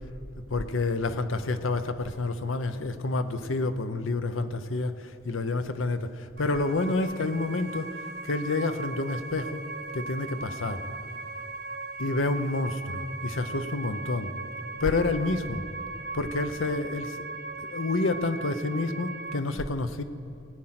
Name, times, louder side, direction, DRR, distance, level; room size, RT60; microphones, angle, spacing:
voice 1, 0.5-9.6 9.9-10.8 12.0-14.3 14.8-15.6 16.1-17.3 17.6-20.0, left 3 dB, 85° left, 10 dB, 0.8 m, -29 dB
sound 1, 6.4-19.4, right 3 dB, 50° right, 0.8 m, -38 dB
18.5 x 8.9 x 5.9 m, 2.8 s
head